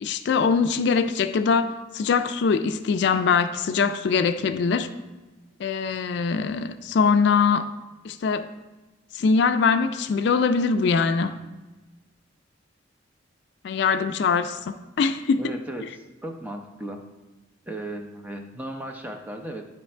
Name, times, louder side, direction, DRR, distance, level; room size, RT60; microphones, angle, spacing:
voice 1, 0.0-4.9 5.6-7.7 8.0-8.5 9.1-11.4 13.6-15.4, left 5 dB, 60° left, 0.3 m, -22 dB
voice 2, 15.4-17.0 17.7-19.6, right 1 dB, 10° right, 0.5 m, -36 dB
9.4 x 3.2 x 4.3 m
head